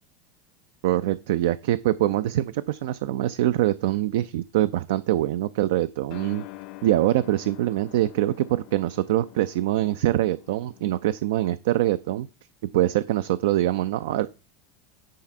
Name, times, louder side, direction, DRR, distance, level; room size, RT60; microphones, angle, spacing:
voice 1, 0.8-6.4 6.8-12.3 12.7-14.3, right 14 dB, 60° right, 0.3 m, -24 dB
sound 1, 6.1-10.9, left 20 dB, 50° left, 0.5 m, -45 dB
9.3 x 3.9 x 5.4 m
figure-of-eight pair, 80°, 0 cm